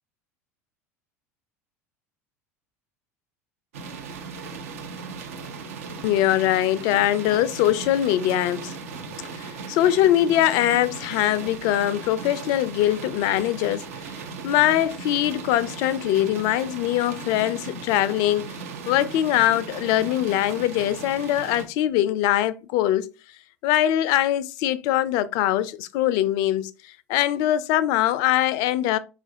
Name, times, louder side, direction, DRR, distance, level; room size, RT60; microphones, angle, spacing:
sound 1, 3.7-21.6, right 5 dB, 75° right, 0.7 m, -37 dB
voice 1, 6.0-8.7 9.1-13.8 14.4-18.6 18.9-23.1 23.6-26.7 27.1-29.0, left 13 dB, 55° left, 0.3 m, -22 dB
4.7 x 2.5 x 2.5 m
hypercardioid pair, 75°, 8 cm